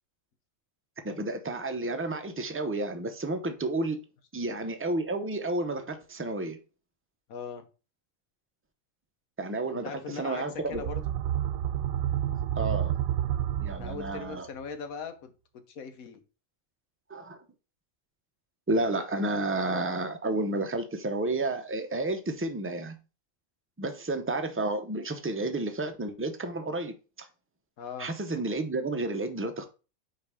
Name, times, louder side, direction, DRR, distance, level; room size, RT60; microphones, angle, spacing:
voice 1, 1.0-4.0 4.3-6.6 9.4-10.8 12.5-12.9 13.6-14.5 17.1-17.4 18.7-23.0 23.8-26.9 28.0-29.7, right 2 dB, 15° right, 0.5 m, -31 dB
voice 2, 7.3-7.6 9.8-11.0 13.7-16.2 27.8-28.1, left 6 dB, 80° left, 1.4 m, -40 dB
sound 1, 10.6-14.4, right 11 dB, 85° right, 1.0 m, -30 dB
5.4 x 4.5 x 4.8 m
omnidirectional pair, 1.5 m